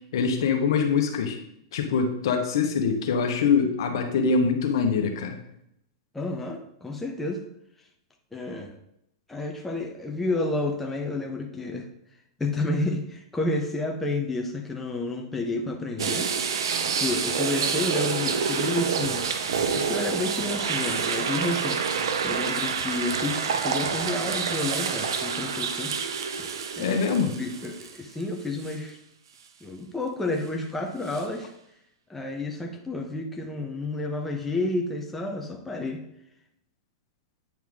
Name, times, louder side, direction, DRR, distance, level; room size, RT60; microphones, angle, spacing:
voice 1, 0.1-1.4 1.7-5.4 26.8-27.3, left 5 dB, 70° left, 5 dB, 1.2 m, -24 dB
voice 2, 6.1-7.4 8.3-8.8 9.3-11.9 12.4-16.3 16.9-19.3 19.7-21.8 22.2-25.9 26.4-26.5 26.8-27.0 27.4-29.0 29.6-31.5 32.1-36.0, left 2 dB, 10° left, 2 dB, 0.9 m, -30 dB
sound 1, 16.0-28.2 28.6-28.8 31.1-31.2, right 6 dB, 80° right, 0.7 m, -28 dB
9.2 x 4.5 x 3.6 m, 0.77 s
hypercardioid pair, 125°, 2 cm